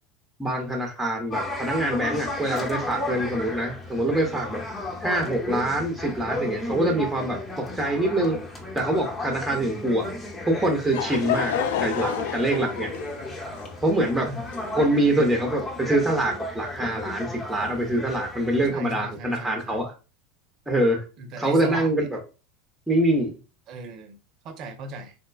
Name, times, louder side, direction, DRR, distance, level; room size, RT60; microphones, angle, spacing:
voice 1, 0.4-4.6 5.0-8.4 8.7-10.1 10.5-11.5 11.8-12.9 13.8-14.3 14.8-19.9 20.7-21.0 21.4-22.2 22.9-23.4, right 1 dB, 5° right, 2 dB, 0.7 m, -24 dB
sound 1, 1.3-18.7, left 2 dB, 20° left, 0.9 m, -34 dB
Laughter / Crowd, 10.5-15.2, left 9 dB, 65° left, 0.3 m, -30 dB
voice 2, 18.7-19.8 21.2-22.1 23.7-24.2 24.4-25.1, right 2 dB, 45° right, 7 dB, 0.6 m, -37 dB
3.7 x 2.2 x 2.3 m, 0.32 s
figure-of-eight pair, 80°, 0 cm